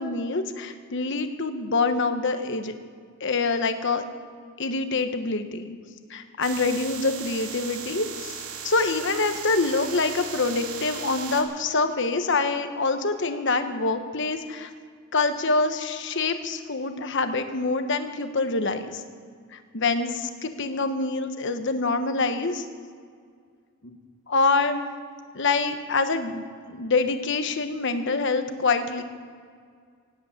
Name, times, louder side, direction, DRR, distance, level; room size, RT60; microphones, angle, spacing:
voice 1, 0.0-2.7 3.2-4.0 4.6-5.8 6.1-14.7 15.1-19.0 19.7-22.6 23.8-24.0 24.3-24.8 25.3-29.0, left 3 dB, 55° left, 8 dB, 1.2 m, -25 dB
sound 1, 6.4-11.4, right 6 dB, 85° right, 1.9 m, -37 dB
18.0 x 8.4 x 8.4 m, 2.1 s
head